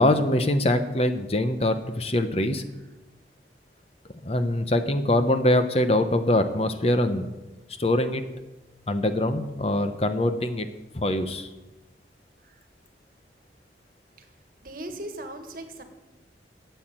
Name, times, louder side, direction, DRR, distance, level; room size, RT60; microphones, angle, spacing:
voice 1, 0.0-2.6 4.2-7.3 7.8-8.2 8.9-10.7 10.9-11.5, left 1 dB, 35° left, 9 dB, 0.8 m, -23 dB
voice 2, 14.6-15.8, right 1 dB, 50° right, 6 dB, 1.6 m, -38 dB
13.0 x 8.0 x 8.9 m, 1.1 s
head